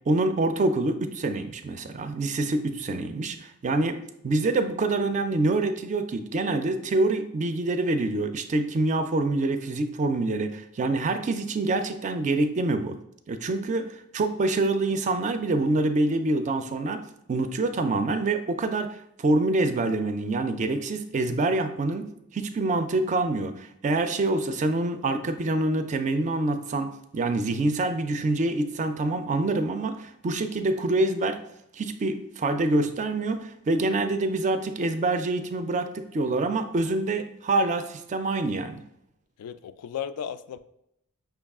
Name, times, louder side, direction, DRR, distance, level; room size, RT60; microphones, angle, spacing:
voice 1, 0.1-12.9 13.3-17.0 17.3-22.1 22.3-31.4 31.7-38.8, right 2 dB, 35° right, 9 dB, 0.3 m, -26 dB
voice 2, 39.4-40.6, left 8 dB, 80° left, 14 dB, 0.3 m, -35 dB
5.8 x 2.3 x 3.5 m, 0.78 s
head